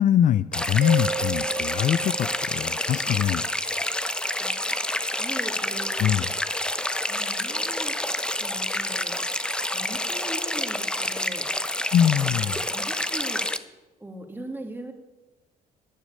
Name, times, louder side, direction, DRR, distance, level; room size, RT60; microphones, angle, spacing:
voice 1, 0.0-3.4 6.0-6.3 11.9-12.6, left 10 dB, 50° left, 15 dB, 0.4 m, -23 dB
sound 1, 0.5-13.6, left 1 dB, 5° left, 0.8 m, -28 dB
Mallet percussion, 0.8-3.3, right 5 dB, 50° right, 1.8 m, -34 dB
voice 2, 5.1-6.2 7.1-7.9 8.4-11.5 12.2-13.4 14.0-14.9, right 1 dB, 10° right, 5 dB, 2.3 m, -40 dB
12.0 x 9.9 x 8.6 m, 1.1 s
cardioid pair, 110°, 17 cm